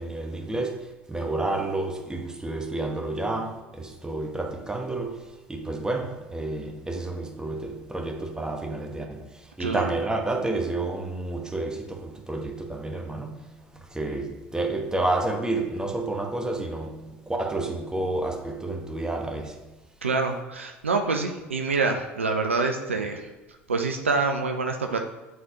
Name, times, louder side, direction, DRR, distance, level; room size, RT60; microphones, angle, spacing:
voice 1, 0.0-13.4 13.7-19.6, right 2 dB, 10° right, 1.1 m, -30 dB
voice 2, 20.0-23.3 23.7-25.0, right 4 dB, 85° right, 0.5 m, -26 dB
9.2 x 3.8 x 2.9 m
figure-of-eight pair, 65°, 7 cm